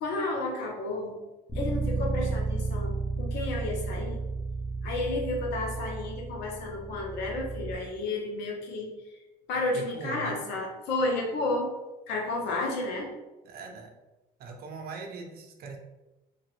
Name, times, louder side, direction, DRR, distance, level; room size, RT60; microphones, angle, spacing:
voice 1, 0.0-1.2 1.5-4.2 4.8-8.9 9.5-11.7 12.1-13.1, left 2 dB, 85° left, 0 dB, 0.8 m, -31 dB
Bass guitar, 1.5-7.7, right 3 dB, 10° left, 0.6 m, -32 dB
voice 2, 9.7-10.4 13.4-13.9 14.4-15.8, right 4 dB, 65° right, 3 dB, 0.6 m, -40 dB
2.8 x 2.3 x 3.1 m, 1.1 s
cardioid pair, 110°, 17 cm